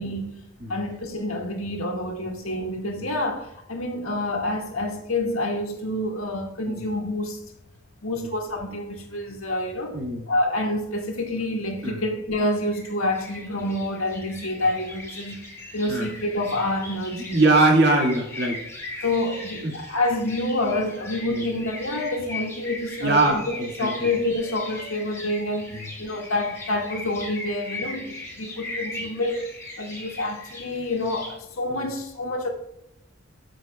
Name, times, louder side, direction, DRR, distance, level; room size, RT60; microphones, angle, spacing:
voice 1, 0.0-0.4 0.7-7.4 8.0-10.0 10.3-15.4 15.7-17.4 19.0-25.7 26.0-29.5 29.8-32.5, left 1 dB, 90° left, 1.7 m, -28 dB
voice 2, 9.9-10.3 11.8-12.0 15.9-16.1 17.1-18.6 19.6-19.7 21.3-21.4 23.0-24.1 25.7-25.9 31.7-31.9, right 2 dB, 50° right, 1.8 m, -22 dB
sound 1, 12.6-31.3, left 2 dB, 15° left, 2.4 m, -39 dB
14.0 x 6.4 x 2.3 m
head